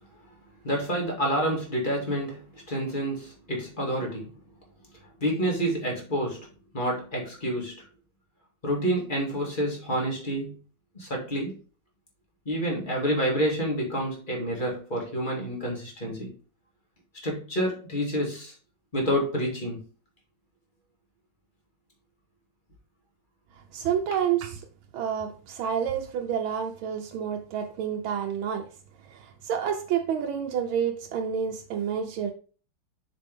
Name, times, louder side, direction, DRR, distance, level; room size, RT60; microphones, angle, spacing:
voice 1, 0.6-4.3 5.2-6.5 6.7-7.9 8.6-10.5 10.9-11.6 12.5-16.3 17.2-18.5 18.9-19.8, equal, 25° left, 2.6 m, -28 dB
voice 2, 23.7-24.6 24.9-28.7 29.1-32.3, right 8 dB, 85° right, 1.6 m, -29 dB
6.8 x 5.5 x 3.7 m
omnidirectional pair, 2.2 m